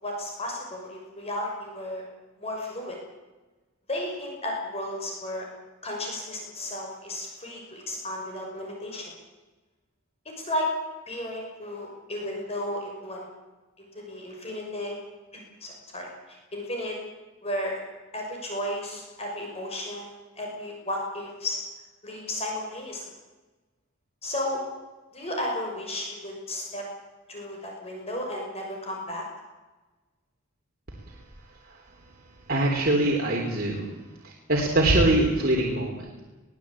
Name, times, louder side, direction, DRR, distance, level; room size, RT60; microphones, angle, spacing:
voice 1, 0.0-2.0 2.4-3.0 3.9-5.5 5.8-9.1 10.2-10.7 11.1-13.3 13.8-15.0 15.3-17.0 17.4-17.8 18.1-21.6 22.0-23.0 24.2-24.6 25.1-26.8 27.3-29.2, left 1 dB, 30° left, 0 dB, 6.1 m, -33 dB
voice 2, 32.5-33.9 34.2-36.2, right 1 dB, 45° right, -1 dB, 3.7 m, -23 dB
22.0 x 17.0 x 8.8 m, 1.2 s
head